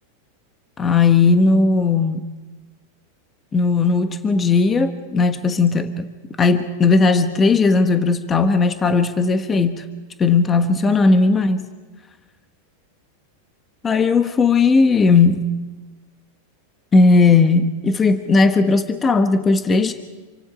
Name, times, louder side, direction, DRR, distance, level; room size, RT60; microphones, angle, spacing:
voice 1, 0.8-2.2 3.5-6.1 6.4-9.9 10.2-11.7 13.8-15.5 16.9-19.9, left 4 dB, 15° left, 8 dB, 1.2 m, -16 dB
27.5 x 25.5 x 5.1 m, 1.2 s
supercardioid pair, 150°, 0 cm